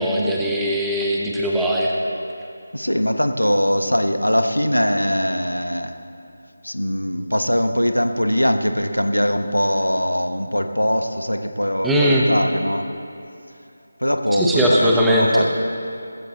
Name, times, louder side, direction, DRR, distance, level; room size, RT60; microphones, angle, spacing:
voice 1, 0.0-1.9 11.8-12.3 14.3-15.4, equal, 5° right, -4 dB, 0.9 m, -19 dB
voice 2, 2.7-5.9 6.6-12.9 14.0-15.5, equal, 85° left, 7 dB, 1.0 m, -21 dB
19.0 x 14.5 x 2.9 m, 2.6 s
figure-of-eight pair, 160°, 0 cm